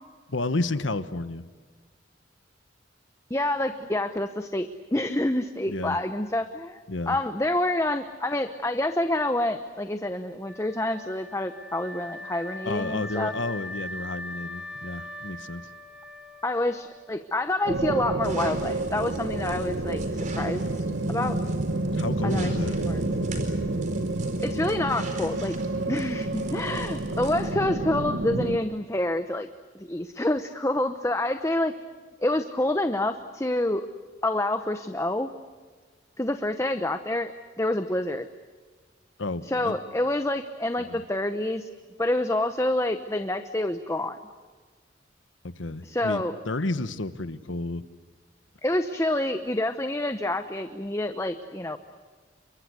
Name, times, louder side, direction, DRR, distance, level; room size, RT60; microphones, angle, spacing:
voice 1, 0.3-1.5 5.7-6.0 6.9-7.2 12.6-15.7 21.9-22.8 39.2-39.8 40.9-41.0 45.4-47.8, left 2 dB, 80° left, 12 dB, 1.2 m, -31 dB
voice 2, 3.3-13.3 16.4-21.4 22.2-23.0 24.4-25.5 25.9-29.5 29.8-31.7 32.2-33.9 34.2-35.3 36.2-38.3 39.4-41.7 42.0-44.2 45.8-46.4 48.6-51.8, left 1 dB, 15° left, 9 dB, 0.8 m, -27 dB
Wind instrument woodwind instrument, 10.4-17.4, left 1 dB, 5° right, 2.9 m, -41 dB
sound 1, 17.7-28.6, right 2 dB, 70° right, 1.5 m, -29 dB
sound 2, 18.2-27.5, right 1 dB, 40° right, 4.4 m, -42 dB
30.0 x 24.0 x 8.1 m, 1.4 s
head